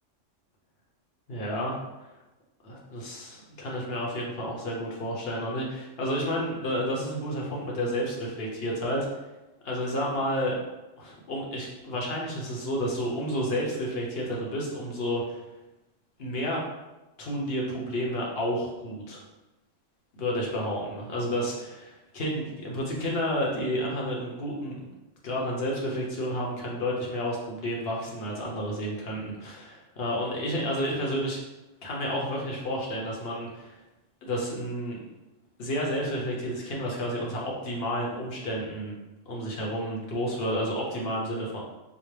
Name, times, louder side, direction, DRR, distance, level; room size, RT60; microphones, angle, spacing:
voice 1, 1.3-1.8 2.6-9.1 9.6-10.5 11.0-15.4 16.2-16.6 17.2-19.2 20.1-24.8 25.2-31.4 31.8-33.8 34.2-35.0 35.6-38.9 39.3-41.6, equal, 55° left, -2 dB, 1.1 m, -31 dB
5.1 x 2.1 x 3.2 m, 1.0 s
omnidirectional pair, 1.3 m